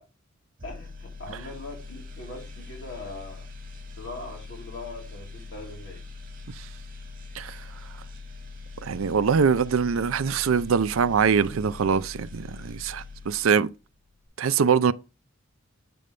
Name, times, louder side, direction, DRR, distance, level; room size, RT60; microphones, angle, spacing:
voice 1, 0.6-3.5 4.0-6.1, left 2 dB, 60° left, 2.7 m, -41 dB
sound 1, 0.6-13.7 14.1-14.3, left 3 dB, 45° right, 1.7 m, -42 dB
voice 2, 8.8-13.7 14.4-14.9, right 6 dB, 70° right, 0.4 m, -23 dB
7.7 x 5.2 x 3.2 m
head